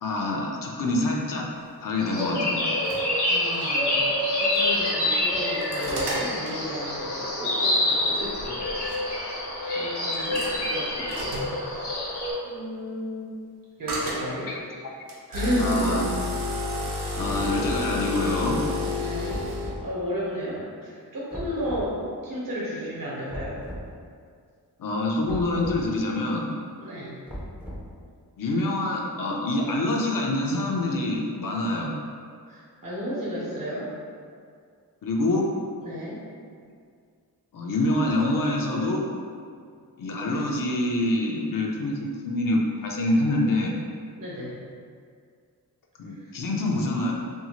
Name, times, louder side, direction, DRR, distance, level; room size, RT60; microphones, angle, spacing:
voice 1, 0.0-1.5 1.8-2.7 14.5-14.6 15.6-16.1 17.2-18.6 24.8-26.5 28.4-31.9 35.0-35.5 37.5-39.0 40.0-43.7 46.0-47.1, left 1 dB, 60° left, -1 dB, 0.5 m, -26 dB
sound 1, 2.0-12.3, left 1 dB, 90° left, 0.9 m, -26 dB
sound 2, 2.6-3.0 3.6-3.7 4.6-4.9 5.3-6.6 8.2-8.3 8.8-9.0 10.1-10.5 11.1-11.6 13.9-14.3 15.1-19.7, left 2 dB, 80° right, 0.6 m, -30 dB
voice 2, 3.3-4.1 4.4-8.6 9.7-11.1 11.7-12.0 12.4-13.3 13.8-14.8 15.3-16.0 18.9-19.5 19.8-22.0 22.2-23.6 26.8-27.1 32.5-33.9 35.8-36.2 40.2-40.5 44.2-44.6, equal, 60° right, -7 dB, 1.0 m, -33 dB
sound 3, 17.3-17.9 19.3-19.9 21.3-21.9 23.3-23.9 25.3-25.8 27.3-28.0, equal, 5° right, 0.4 m, -37 dB
2.6 x 2.4 x 2.8 m, 2.2 s
wide cardioid pair, 75°, 39 cm